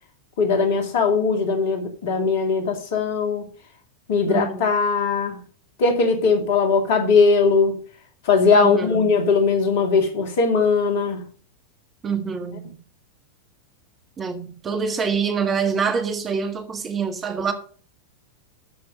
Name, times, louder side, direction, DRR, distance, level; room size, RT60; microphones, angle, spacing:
voice 1, 0.4-3.5 4.1-5.4 5.8-7.8 8.2-11.2, left 4 dB, 50° left, 2.3 m, -20 dB
voice 2, 4.3-4.6 8.5-9.2 12.0-12.8 14.2-17.5, right 6 dB, 20° right, 1.8 m, -26 dB
12.5 x 5.8 x 5.3 m
figure-of-eight pair, 90°, 0 cm